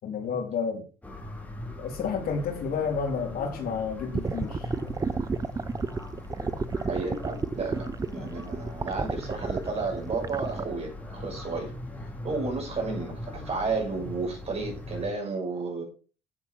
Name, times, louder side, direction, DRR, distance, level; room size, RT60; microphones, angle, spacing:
voice 1, 0.0-0.8 1.8-4.7, left 6 dB, 60° left, 2 dB, 3.6 m, -30 dB
sound 1, 1.0-15.1, left 1 dB, 10° left, 3.9 m, -40 dB
sound 2, 4.1-10.6, right 4 dB, 20° right, 0.7 m, -31 dB
voice 2, 6.9-11.7 12.2-15.8, right 4 dB, 40° right, 1 dB, 6.2 m, -32 dB
10.5 x 8.1 x 4.7 m, 0.36 s
cardioid pair, 110°, 17 cm